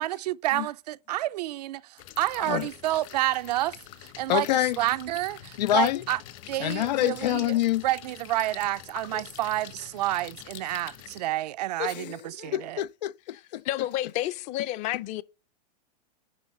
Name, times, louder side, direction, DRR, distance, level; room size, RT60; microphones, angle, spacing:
voice 1, 0.0-3.8 4.2-4.5 4.8-6.2 6.5-7.5 7.8-12.8, right 15 dB, 70° right, 0.5 m, -29 dB
sound 1, 2.0-11.2, left 13 dB, 50° left, 1.2 m, -46 dB
voice 2, 4.3-4.8 5.6-6.0 6.6-7.8 9.1-9.2 11.8-13.6, left 14 dB, 90° left, 0.4 m, -27 dB
voice 3, 13.6-15.2, left 14 dB, 35° left, 0.6 m, -30 dB
11.0 x 3.9 x 7.3 m
supercardioid pair, 145°, 21 cm